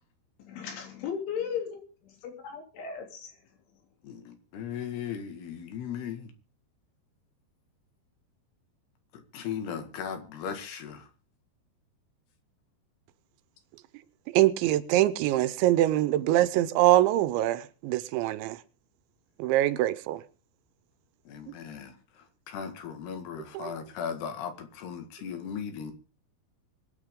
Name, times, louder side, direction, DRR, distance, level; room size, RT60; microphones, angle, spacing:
voice 1, 0.5-1.7 2.2-3.3, left 7 dB, 90° left, 5.6 m, -35 dB
voice 2, 4.0-6.3 9.3-11.1 21.3-25.9, left 7 dB, 65° left, 3.7 m, -37 dB
voice 3, 14.3-18.6 19.4-20.2 23.5-23.7, right 14 dB, 80° right, 3.1 m, -24 dB
24.0 x 9.6 x 3.8 m
omnidirectional pair, 5.3 m